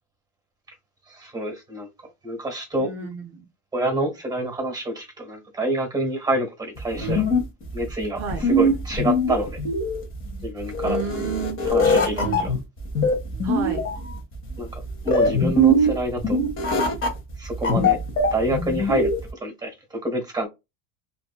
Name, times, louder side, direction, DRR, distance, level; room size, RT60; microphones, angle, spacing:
voice 1, 1.1-2.9 3.7-7.2 7.7-9.6 10.4-11.0 11.6-12.5 14.6-16.4 17.4-18.0 18.3-20.5, right 1 dB, 10° right, 1.2 m, -27 dB
voice 2, 2.8-3.3 8.2-8.4 10.8-11.6 12.1-12.5 13.4-13.9, right 5 dB, 35° right, 0.5 m, -31 dB
sound 1, 6.8-19.3, equal, 30° left, 0.9 m, -22 dB
2.5 x 2.5 x 2.3 m
cardioid pair, 140°, 44 cm